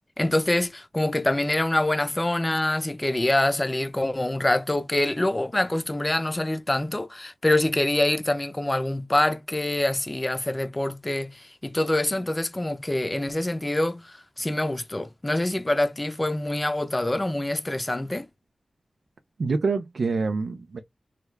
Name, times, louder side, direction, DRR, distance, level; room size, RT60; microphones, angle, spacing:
voice 1, 0.2-18.3, left 1 dB, 20° left, 0.5 m, -25 dB
voice 2, 19.4-20.8, right 4 dB, 85° right, 0.5 m, -26 dB
3.2 x 2.4 x 3.1 m
wide cardioid pair, 80°, 0 cm